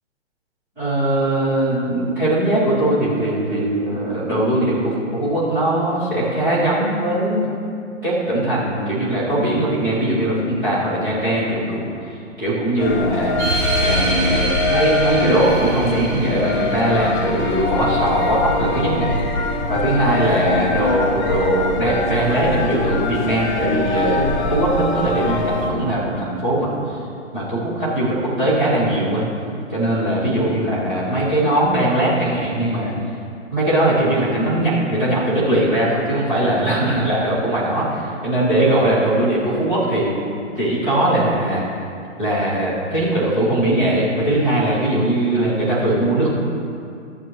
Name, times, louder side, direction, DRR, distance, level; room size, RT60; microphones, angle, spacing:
voice 1, 0.8-7.5 8.0-13.3 13.8-19.3 19.7-27.0 27.3-29.3 29.7-32.9 33.5-40.2 40.5-41.6 42.2-46.4, right 1 dB, 5° right, -12 dB, 0.5 m, -20 dB
sound 1, 12.8-25.7, left 2 dB, 35° left, 1.0 m, -23 dB
sound 2, 13.4-18.4, right 1 dB, 25° right, 2.4 m, -26 dB
14.0 x 8.0 x 3.0 m, 2.5 s
hypercardioid pair, 165°, 37 cm